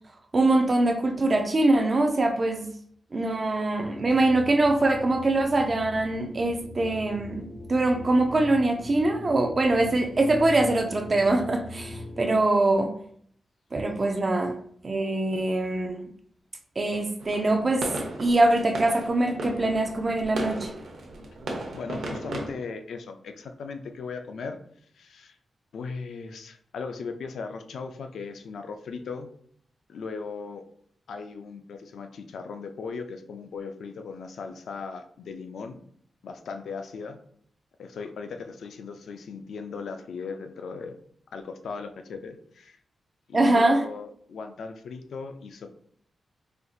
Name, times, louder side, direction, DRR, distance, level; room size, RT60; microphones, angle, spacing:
voice 1, 0.3-2.7 3.1-12.9 13.7-14.6 14.8-16.0 16.8-17.9 18.2-20.7 43.3-43.8, right 2 dB, 35° right, 5 dB, 0.4 m, -23 dB
sound 1, 3.8-12.4, left 1 dB, 45° left, 1.3 m, -41 dB
sound 2, 17.2-22.5, right 2 dB, 85° right, 0.8 m, -35 dB
voice 2, 21.7-24.6 24.9-25.4 25.7-29.3 29.9-30.6 31.1-35.8 36.2-37.2 37.8-41.0 41.3-42.8 43.3-45.7, left 4 dB, 85° left, 6 dB, 0.4 m, -38 dB
4.3 x 2.6 x 2.4 m, 0.63 s
wide cardioid pair, 135°, 0 cm